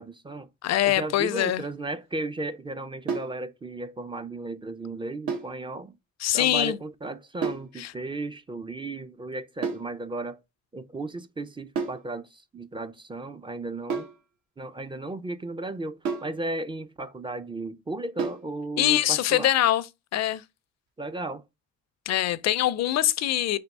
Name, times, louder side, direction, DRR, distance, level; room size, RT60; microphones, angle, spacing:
voice 1, 0.0-0.5 0.8-5.9 6.3-10.4 10.7-14.1 14.6-19.5 21.0-21.4, right 2 dB, 15° right, 0.4 m, -35 dB
voice 2, 0.6-1.6 6.2-6.8 7.8-7.9 18.8-19.9 20.1-20.4 22.1-23.6, left 13 dB, 60° left, 0.5 m, -23 dB
sound 1, 3.1-3.4 5.3-5.6 7.4-7.7 9.6-9.9 11.8-12.1 13.9-14.2 16.0-16.4 18.2-18.5, right 5 dB, 70° right, 1.1 m, -30 dB
3.5 x 2.9 x 4.0 m
cardioid pair, 90°, 30 cm